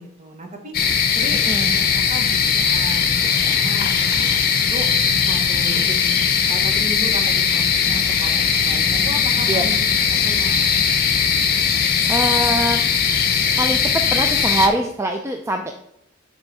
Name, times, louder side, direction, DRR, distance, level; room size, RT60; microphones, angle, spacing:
voice 1, 0.0-1.4 1.7-4.9 5.3-6.0 6.5-9.8 10.2-10.7, right 1 dB, 35° right, 3 dB, 1.1 m, -35 dB
sound 1, 0.7-14.7, left 6 dB, 50° left, 0.7 m, -19 dB
voice 2, 1.5-1.8 9.5-9.6 12.1-12.8 13.6-15.7, right 1 dB, 15° right, 4 dB, 0.4 m, -23 dB
9.8 x 3.6 x 4.1 m, 0.81 s
head